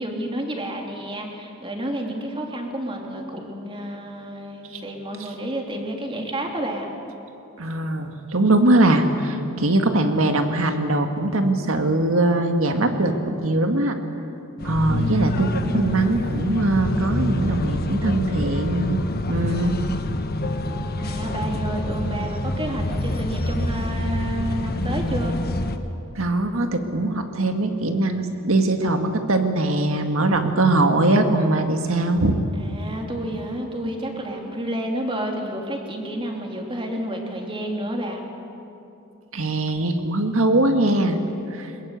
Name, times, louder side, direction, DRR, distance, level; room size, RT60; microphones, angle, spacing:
voice 1, 0.0-6.9 14.9-15.4 21.0-25.4 32.5-38.2, right 1 dB, 25° right, 1 dB, 3.0 m, -30 dB
voice 2, 7.6-14.0 14.6-19.0 19.3-19.8 26.2-32.4 39.3-41.2 41.5-41.7, right 2 dB, 70° right, 5 dB, 2.0 m, -21 dB
sound 1, 14.6-25.8, left 1 dB, 50° left, 1.3 m, -26 dB
21.5 x 21.5 x 8.3 m, 2.8 s
head